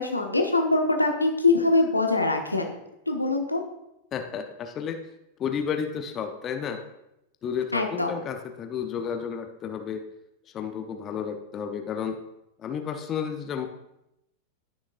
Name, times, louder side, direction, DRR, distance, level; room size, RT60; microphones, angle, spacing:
voice 1, 0.0-2.7 3.1-3.6 7.7-8.1, left 2 dB, 85° left, 3 dB, 1.1 m, -23 dB
voice 2, 4.1-5.0 5.4-6.8 7.4-10.0 10.5-12.2 12.6-13.7, left 7 dB, 30° left, 5 dB, 0.8 m, -32 dB
15.5 x 6.3 x 2.6 m, 0.86 s
figure-of-eight pair, 90°, 0 cm